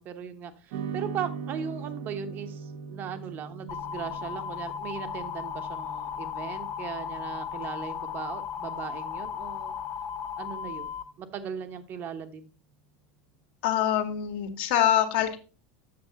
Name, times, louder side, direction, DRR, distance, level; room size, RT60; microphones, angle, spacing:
voice 1, 0.0-9.7 10.4-12.5, right 8 dB, 40° right, 10 dB, 1.1 m, -38 dB
sound 1, 0.7-9.2, right 6 dB, 70° right, 1.2 m, -41 dB
sound 2, 3.7-11.0, left 8 dB, 45° left, 1.1 m, -36 dB
voice 2, 13.6-15.4, left 11 dB, 70° left, 4 dB, 1.7 m, -24 dB
7.8 x 6.5 x 4.1 m, 0.35 s
supercardioid pair, 135°, 5 cm